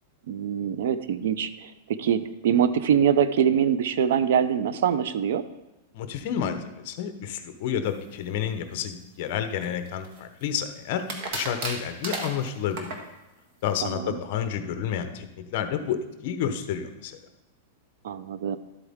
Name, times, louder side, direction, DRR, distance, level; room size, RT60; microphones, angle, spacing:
voice 1, 0.3-5.4 13.8-14.2 18.0-18.6, right 8 dB, 65° right, 14 dB, 0.6 m, -24 dB
voice 2, 5.9-12.9 13.6-17.2, left 8 dB, 45° left, 8 dB, 0.9 m, -30 dB
sound 1, 9.6-10.4 11.1-13.1, right 2 dB, 45° right, 1.6 m, -34 dB
12.5 x 8.1 x 3.6 m, 1.0 s
supercardioid pair, 165°, 0 cm